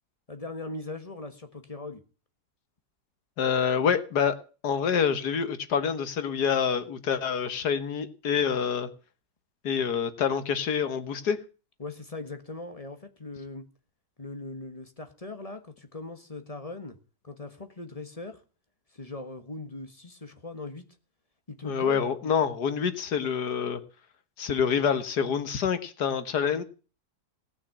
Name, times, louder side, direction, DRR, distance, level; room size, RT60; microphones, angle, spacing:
voice 1, 0.3-2.0 11.8-13.6 14.2-17.0 17.2-18.4 18.9-20.9 21.5-22.3, left 3 dB, 25° left, 7 dB, 1.5 m, -40 dB
voice 2, 3.4-4.4 4.6-8.9 9.6-11.4 21.6-23.8 24.4-26.6, left 7 dB, 85° left, 11 dB, 1.9 m, -27 dB
17.5 x 6.5 x 8.6 m, 0.36 s
omnidirectional pair, 1.7 m